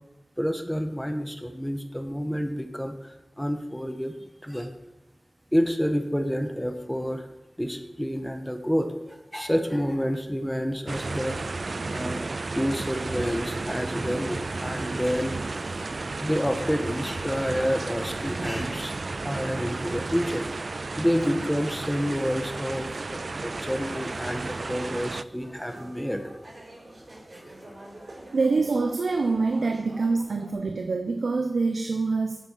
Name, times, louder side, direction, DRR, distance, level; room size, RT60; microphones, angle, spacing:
voice 1, 0.4-4.1 4.4-4.7 5.5-7.3 7.6-11.4 11.8-12.2 12.6-15.3 15.6-15.8 16.2-20.5 21.0-26.4 27.3-27.4, equal, 5° left, 6 dB, 1.3 m, -29 dB
sound 1, 10.9-25.2, right 3 dB, 55° right, 0.3 m, -33 dB
sound 2, 23.3-30.5, right 1 dB, 40° right, 5.5 m, -47 dB
voice 2, 28.3-32.4, right 3 dB, 85° right, 6 dB, 0.8 m, -25 dB
11.0 x 7.5 x 7.4 m, 0.98 s
wide cardioid pair, 60°, 0 cm